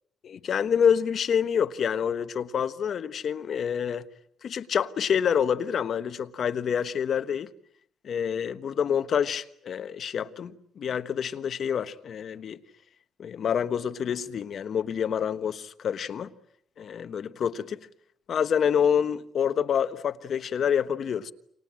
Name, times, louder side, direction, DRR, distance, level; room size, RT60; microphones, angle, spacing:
voice 1, 0.2-4.1 4.4-7.5 8.0-12.6 13.2-16.3 16.8-17.8 18.3-21.3, left 8 dB, 60° left, 1.3 m, -27 dB
29.0 x 26.5 x 7.6 m
cardioid pair, 90°, 0 cm